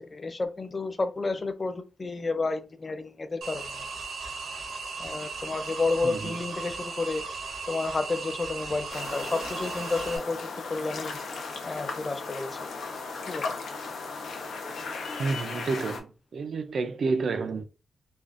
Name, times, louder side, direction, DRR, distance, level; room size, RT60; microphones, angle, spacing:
voice 1, 0.1-3.9 5.0-7.2 7.7-11.2 11.6-12.6 13.3-13.5, left 3 dB, 25° left, 0.3 m, -31 dB
sound 1, 3.4-10.2, right 4 dB, 80° right, 0.8 m, -37 dB
voice 2, 6.0-6.4 15.2-17.6, right 4 dB, 55° right, 0.3 m, -30 dB
sound 2, 8.9-16.0, left 4 dB, 85° left, 0.6 m, -36 dB
3.2 x 2.3 x 2.4 m
wide cardioid pair, 165°, 0 cm